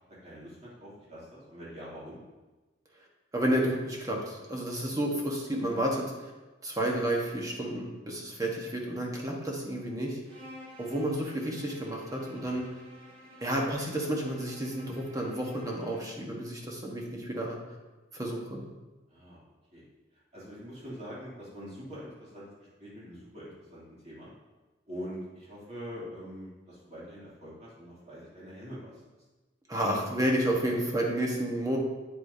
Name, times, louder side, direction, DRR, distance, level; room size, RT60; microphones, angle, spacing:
voice 1, 0.2-2.2 4.8-5.0 12.5-12.6 19.1-19.4 19.7-19.8 20.3-22.5 22.8-24.3 24.9-29.0, equal, 35° right, -8 dB, 2.8 m, -44 dB
voice 2, 3.3-6.3 6.6-10.2 10.8-12.7 13.4-17.6 18.1-18.6 29.7-31.8, right 1 dB, 20° right, -1 dB, 1.2 m, -31 dB
Bowed string instrument, 10.2-16.3, equal, 85° right, 2.1 m, -52 dB
8.4 x 8.3 x 2.7 m, 1.2 s
head